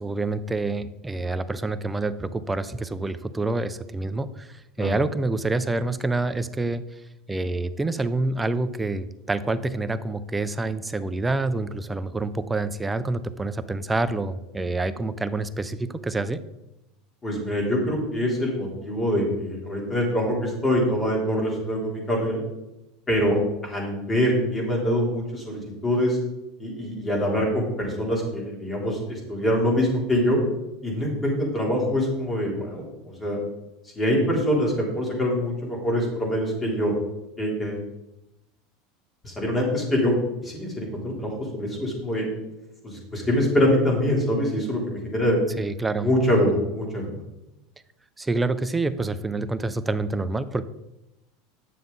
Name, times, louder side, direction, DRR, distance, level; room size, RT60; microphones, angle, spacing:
voice 1, 0.0-6.8 7.3-16.4 45.6-46.1 48.2-50.7, right 2 dB, 10° right, 12 dB, 0.5 m, -27 dB
voice 2, 17.2-22.4 23.1-26.2 26.6-30.4 30.8-33.4 33.9-36.9 37.4-37.8 39.2-40.1 40.4-42.2 42.8-45.4 45.9-47.2, equal, 20° left, -2 dB, 3.4 m, -24 dB
9.3 x 7.0 x 4.0 m, 0.93 s
supercardioid pair, 120°, 0 cm